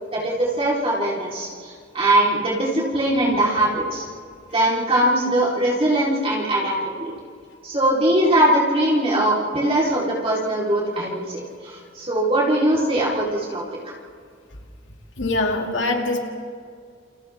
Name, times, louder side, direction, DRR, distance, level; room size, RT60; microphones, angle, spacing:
voice 1, 0.1-4.0 4.5-7.1 7.6-13.6, right 1 dB, 30° right, -5 dB, 4.1 m, -21 dB
voice 2, 15.2-16.2, left 2 dB, 75° left, 2 dB, 2.5 m, -23 dB
29.5 x 29.0 x 3.7 m, 2.2 s
head